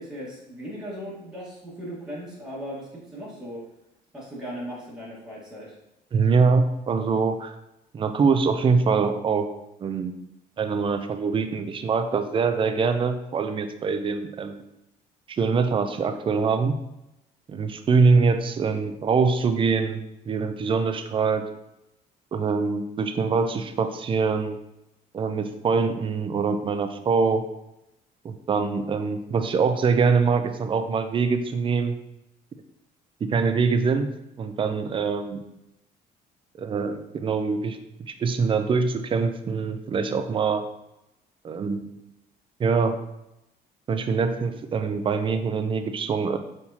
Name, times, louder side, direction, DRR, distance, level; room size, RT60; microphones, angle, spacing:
voice 1, 0.0-3.6 4.1-5.7, equal, 5° right, -8 dB, 1.5 m, -37 dB
voice 2, 6.1-7.5 7.9-9.5 9.8-10.1 10.6-14.6 15.3-16.8 17.5-21.4 22.3-24.6 25.1-27.4 28.2-31.9 33.2-34.1 34.4-35.4 36.6-37.8 38.1-40.6 41.4-41.8 42.6-43.0 43.9-46.4, right 5 dB, 30° right, 8 dB, 0.4 m, -24 dB
4.5 x 3.6 x 2.7 m, 0.88 s
cardioid pair, 110°, 17 cm